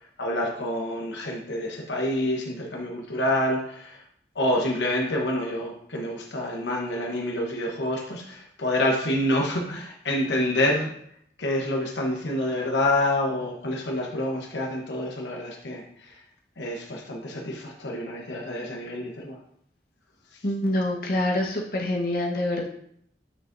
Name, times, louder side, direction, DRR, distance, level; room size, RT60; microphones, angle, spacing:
voice 1, 0.2-4.0 4.3-10.9 11.4-16.1 16.6-19.4, left 1 dB, 90° left, 0 dB, 1.0 m, -27 dB
voice 2, 20.4-22.7, left 1 dB, 55° left, -2 dB, 1.3 m, -26 dB
7.6 x 6.4 x 2.6 m, 0.70 s
head